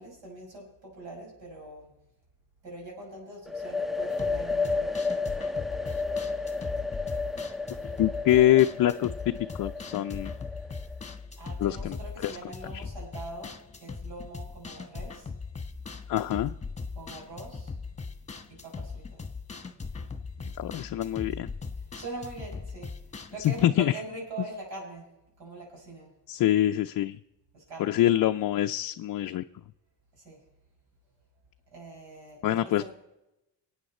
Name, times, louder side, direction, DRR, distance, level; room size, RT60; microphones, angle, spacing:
voice 1, 0.0-1.9 2.6-5.3 11.4-15.3 16.9-17.7 18.5-19.2 20.7-20.8 21.7-22.9 23.3-25.1 25.4-26.1 27.5-28.0 30.1-30.4 31.7-32.9, right 2 dB, 70° right, -1 dB, 5.9 m, -43 dB
sound 1, 3.5-11.1, left 4 dB, ahead, 0.5 m, -32 dB
sound 2, 4.1-23.7, left 4 dB, 15° left, 1.3 m, -40 dB
voice 2, 8.0-9.3 9.6-10.3 11.6-12.0 12.2-12.3 12.7-12.8 16.1-16.5 20.6-21.5 23.4-23.9 26.3-27.2 27.8-29.4 32.4-32.9, left 13 dB, 50° left, 6 dB, 0.5 m, -25 dB
22.5 x 8.8 x 4.3 m, 0.94 s
cardioid pair, 100°, 44 cm